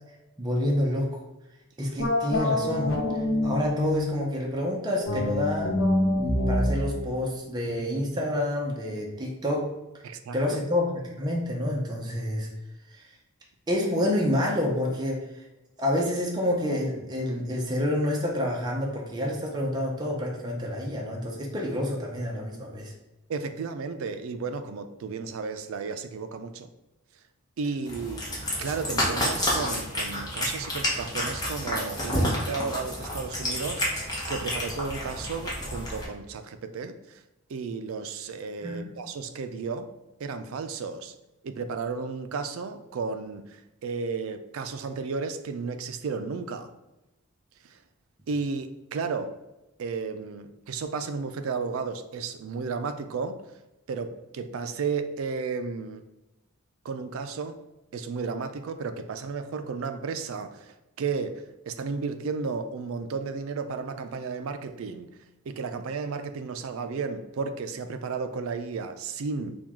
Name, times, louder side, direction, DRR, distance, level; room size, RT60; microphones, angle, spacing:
voice 1, 0.4-1.1 1.8-2.9 3.4-5.8 6.1-9.7 10.3-12.5 12.9-13.0 13.7-15.3 15.8-22.9 38.6-38.9, left 1 dB, 20° right, -2 dB, 0.6 m, -28 dB
sound 1, 2.0-4.3 5.0-8.4, left 1 dB, 75° left, 0.7 m, -27 dB
voice 2, 10.0-10.4 23.3-26.7 27.6-28.2 28.6-33.9 34.3-37.2 37.5-39.9 40.2-41.1 41.4-46.7 48.3-49.3 49.8-53.4 53.9-56.0 56.8-57.6 57.9-65.1 65.5-69.5, right 4 dB, 75° right, 9 dB, 0.4 m, -33 dB
Cat, 27.9-36.0, equal, 20° left, 0.9 m, -30 dB
4.5 x 2.3 x 3.6 m, 0.99 s
head